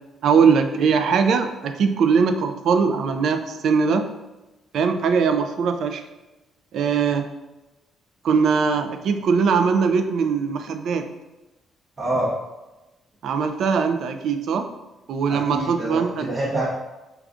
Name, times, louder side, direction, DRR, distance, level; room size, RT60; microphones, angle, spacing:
voice 1, 0.2-4.1 4.7-6.0 6.7-7.3 8.2-11.1 13.2-14.7 15.1-16.3, right 5 dB, 70° right, 7 dB, 0.3 m, -21 dB
voice 2, 12.0-12.3 15.3-16.7, right 1 dB, 35° right, -6 dB, 0.7 m, -26 dB
4.7 x 2.3 x 2.5 m, 1.1 s
cardioid pair, 90°, 0 cm